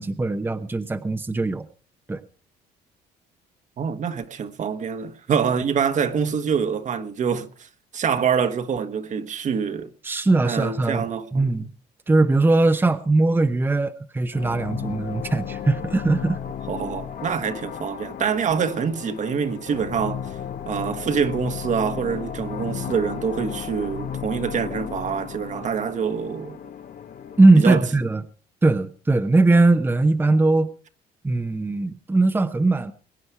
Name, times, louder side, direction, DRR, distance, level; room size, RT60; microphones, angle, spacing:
voice 1, 0.0-1.7 2.1-2.2 10.0-11.0 11.3-11.7 12.1-16.4 27.4-28.2 28.6-30.7 31.2-32.9, right 2 dB, 10° right, 0.9 m, -20 dB
voice 2, 3.8-7.7 7.9-9.9 10.4-11.7 16.7-20.2 20.7-26.6 27.6-27.8, right 6 dB, 45° right, 1.4 m, -25 dB
sound 1, 14.3-27.7, left 8 dB, 55° left, 1.1 m, -34 dB
22.5 x 9.6 x 4.7 m
cardioid pair, 110°, 17 cm